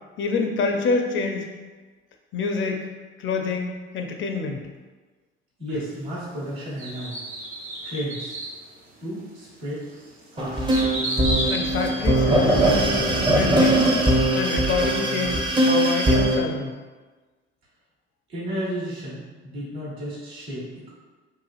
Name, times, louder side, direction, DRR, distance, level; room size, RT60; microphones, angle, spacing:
voice 1, 0.2-1.5 2.3-2.8 3.2-4.6 11.5-13.0 13.3-13.9 14.3-16.8, left 4 dB, 40° left, 3 dB, 0.4 m, -26 dB
voice 2, 5.6-7.2 7.8-8.4 9.0-9.8 10.3-10.6 18.3-20.9, equal, 85° right, -9 dB, 1.1 m, -32 dB
sound 1, 6.8-8.6 9.2-9.3 9.8-12.6 13.0-13.1, right 1 dB, 60° right, 1.2 m, -31 dB
sound 2, 10.4-16.4, right 1 dB, 15° right, 0.5 m, -20 dB
3.0 x 2.3 x 2.3 m, 1.3 s
hypercardioid pair, 60°, 31 cm